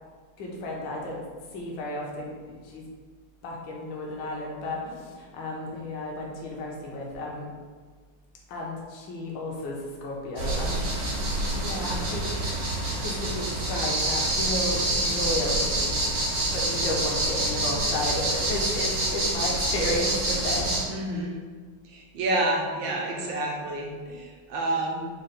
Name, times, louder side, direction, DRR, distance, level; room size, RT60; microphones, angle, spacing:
voice 1, 0.4-1.2 1.5-2.9 3.4-7.5 8.5-10.9 11.5-12.3 12.9-16.0 16.5-21.1, left 1 dB, 65° left, -2 dB, 1.4 m, -33 dB
sound 1, 10.4-20.8, right 1 dB, 90° right, 2.0 m, -27 dB
voice 2, 20.9-21.4 21.8-25.1, right 1 dB, 70° right, -1 dB, 1.3 m, -29 dB
5.1 x 2.2 x 4.2 m, 1.5 s
omnidirectional pair, 2.4 m